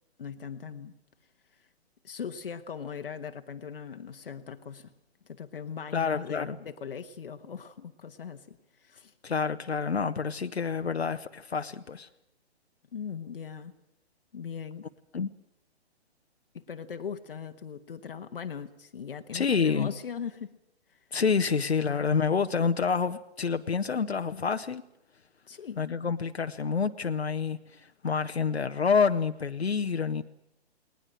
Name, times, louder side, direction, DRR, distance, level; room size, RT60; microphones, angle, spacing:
voice 1, 0.2-0.9 1.5-1.7 2.0-4.9 5.2-9.1 12.9-13.7 14.3-14.9 16.5-20.6 20.9-21.1 21.7-22.1 24.3-24.4 25.5-26.0, left 7 dB, 55° left, 1.3 m, -40 dB
voice 2, 5.9-6.6 9.2-12.1 15.1-15.3 19.3-19.9 21.1-24.8 25.8-30.2, left 5 dB, 70° left, 1.0 m, -28 dB
20.0 x 19.5 x 8.8 m
figure-of-eight pair, 130°, 33 cm